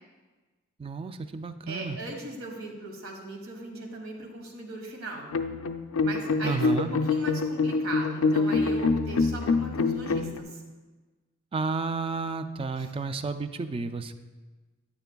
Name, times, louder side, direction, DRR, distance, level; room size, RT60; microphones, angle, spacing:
voice 1, 0.8-2.0 6.4-6.9 11.5-14.1, right 4 dB, 25° right, 10 dB, 0.3 m, -31 dB
voice 2, 1.7-5.3 6.0-10.6 12.8-12.9, right 2 dB, 75° right, 2 dB, 1.4 m, -39 dB
sound 1, 5.3-10.4, left 4 dB, 70° left, 0.4 m, -26 dB
9.6 x 9.2 x 2.3 m, 1.2 s
head